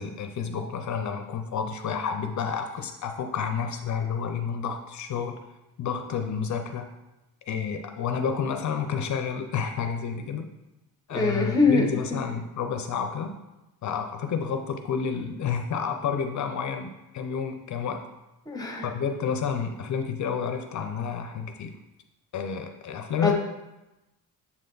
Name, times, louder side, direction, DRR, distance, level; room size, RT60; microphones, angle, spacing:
voice 1, 0.0-5.3 5.8-6.9 7.5-10.5 11.1-13.3 13.8-18.0 18.8-21.7 22.3-23.3, left 6 dB, 50° left, 6 dB, 0.5 m, -30 dB
voice 2, 11.1-11.9 18.5-18.9 23.2-23.3, left 3 dB, 10° left, 2 dB, 0.9 m, -22 dB
7.3 x 3.3 x 3.9 m, 0.98 s
cardioid pair, 140°, 36 cm